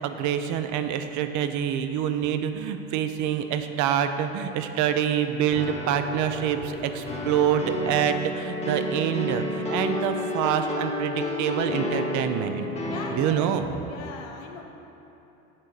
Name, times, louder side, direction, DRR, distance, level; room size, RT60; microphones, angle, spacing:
voice 1, 0.0-12.7 13.1-13.7, right 9 dB, 50° right, 8 dB, 0.6 m, -26 dB
sound 1, 5.5-13.8, left 1 dB, 15° left, 1.2 m, -31 dB
voice 2, 12.9-14.6, left 5 dB, 85° left, 2 dB, 0.8 m, -39 dB
7.5 x 4.4 x 4.8 m, 3.0 s
hypercardioid pair, 80°, 39 cm